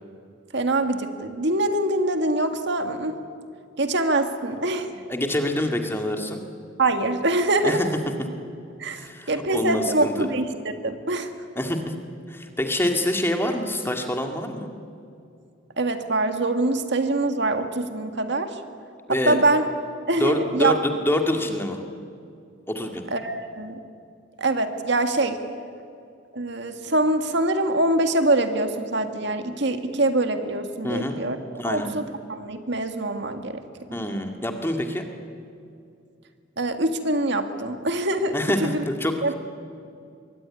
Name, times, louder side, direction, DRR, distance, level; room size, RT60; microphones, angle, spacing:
voice 1, 0.5-3.2 3.8-4.9 6.8-7.8 8.8-9.0 9.3-10.5 10.8-11.3 15.8-18.6 19.1-19.7 20.1-20.8 23.1-23.8 24.4-25.4 26.3-31.4 31.6-33.6 36.6-38.3 38.6-38.8 39.2-39.3, right 2 dB, 60° right, 7 dB, 1.9 m, -24 dB
voice 2, 5.1-6.4 7.6-7.9 9.0-10.1 11.6-11.8 12.3-14.7 19.1-19.4 20.2-20.8 21.1-21.8 22.7-23.0 30.8-31.2 31.6-31.9 33.9-35.0 38.3-39.1, left 1 dB, 10° left, 4 dB, 2.2 m, -26 dB
25.5 x 23.0 x 9.8 m, 2.5 s
head